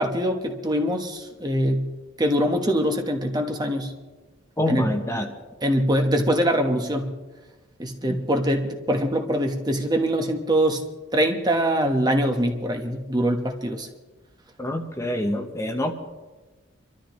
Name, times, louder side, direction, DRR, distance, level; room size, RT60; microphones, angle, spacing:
voice 1, 0.0-1.9 2.2-3.9 4.7-4.9 5.6-7.1 7.8-10.8 11.1-13.9, equal, 20° right, 3 dB, 1.1 m, -23 dB
voice 2, 4.6-5.3 8.1-8.2 14.6-15.9, left 1 dB, 15° left, 3 dB, 0.9 m, -26 dB
27.0 x 13.0 x 3.1 m, 1.2 s
head